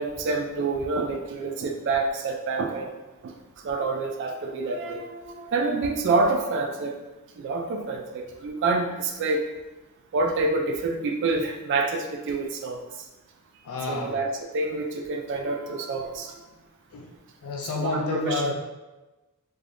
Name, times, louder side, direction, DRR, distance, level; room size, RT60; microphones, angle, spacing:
voice 1, 0.0-3.0 3.2-3.3 3.6-6.9 7.4-9.5 10.1-12.8 13.9-16.4 17.7-18.5, right 3 dB, 55° right, 4 dB, 0.3 m, -27 dB
voice 2, 13.6-14.1 16.9-17.1 17.4-18.5, left 3 dB, 70° left, 0 dB, 0.4 m, -29 dB
3.3 x 2.2 x 2.5 m, 1.1 s
head